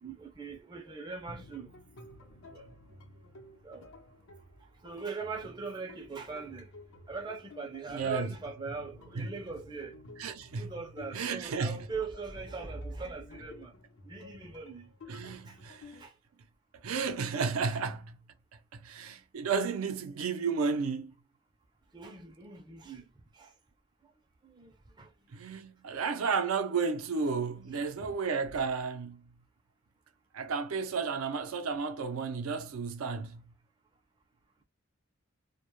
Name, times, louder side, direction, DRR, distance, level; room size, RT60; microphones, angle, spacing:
voice 1, 0.0-1.7 2.5-2.6 3.6-3.8 4.8-6.7 7.1-9.9 10.6-13.7 14.1-14.9 15.5-15.6 16.0-16.1 17.7-17.8 21.9-23.0 23.3-23.5 24.4-25.1 27.7-28.2, right 4 dB, 20° right, 0.4 m, -41 dB
sound 1, 1.3-16.0, left 2 dB, 80° left, 0.7 m, -52 dB
voice 2, 7.9-8.3 9.2-9.3 10.2-10.7 11.1-11.8 15.1-16.0 16.8-18.2 18.7-21.1 25.3-29.2 30.3-33.4, right 5 dB, 80° right, 0.4 m, -32 dB
2.1 x 2.0 x 2.9 m
head